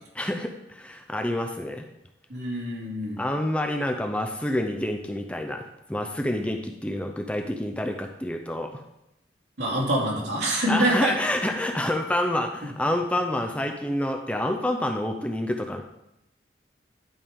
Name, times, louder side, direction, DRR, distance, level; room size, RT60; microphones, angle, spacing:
voice 1, 0.1-1.8 3.2-8.8 10.7-15.8, left 1 dB, 5° left, 4 dB, 0.5 m, -28 dB
voice 2, 2.3-3.2 9.6-11.1, right 1 dB, 80° right, -3 dB, 2.6 m, -25 dB
11.0 x 5.2 x 3.6 m, 0.85 s
head